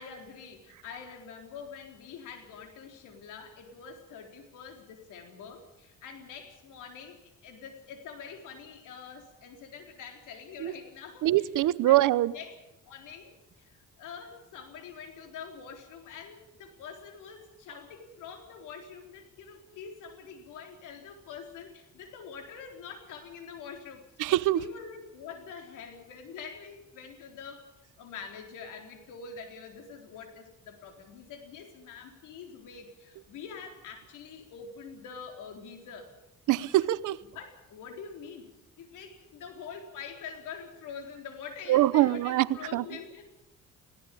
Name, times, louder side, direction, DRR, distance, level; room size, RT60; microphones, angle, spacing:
voice 1, 0.0-12.0 12.3-12.5 12.9-13.3 13.6-24.0 24.5-27.7 28.0-36.1 36.6-37.0 37.3-38.5 38.8-43.3, left 6 dB, 90° left, 4.1 m, -45 dB
voice 2, 11.2-12.3 24.2-24.6 36.5-37.2 41.7-42.5 42.7-42.8, right 15 dB, 85° right, 0.9 m, -23 dB
19.5 x 17.0 x 8.5 m
cardioid pair, 90°, 30 cm